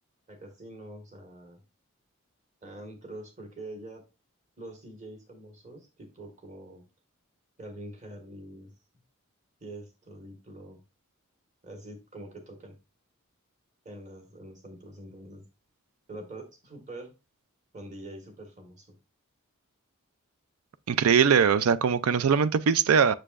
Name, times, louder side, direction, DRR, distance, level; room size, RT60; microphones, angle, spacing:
voice 1, 0.3-1.6 2.6-4.0 4.6-6.8 7.6-8.7 9.6-10.8 11.6-12.7 13.8-15.4 16.1-17.1 17.7-19.0, right 1 dB, 35° right, 1.6 m, -44 dB
voice 2, 20.9-23.1, right 6 dB, 80° right, 0.4 m, -21 dB
6.7 x 6.0 x 2.5 m
head